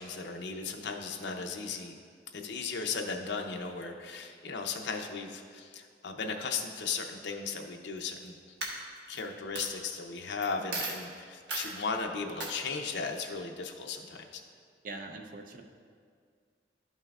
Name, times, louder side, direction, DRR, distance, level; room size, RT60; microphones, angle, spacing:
voice 1, 0.0-2.0 2.3-8.4 9.1-14.4, left 4 dB, 75° left, 3 dB, 0.6 m, -36 dB
Coin (dropping), 8.0-8.3 8.6-9.2 9.6-9.7 10.4-10.5 10.7-11.0 11.5-11.7 12.4-12.5, right 3 dB, 80° right, 1.1 m, -35 dB
voice 2, 14.8-15.6, right 2 dB, 50° right, 4 dB, 0.6 m, -42 dB
12.0 x 5.5 x 2.4 m, 2.1 s
head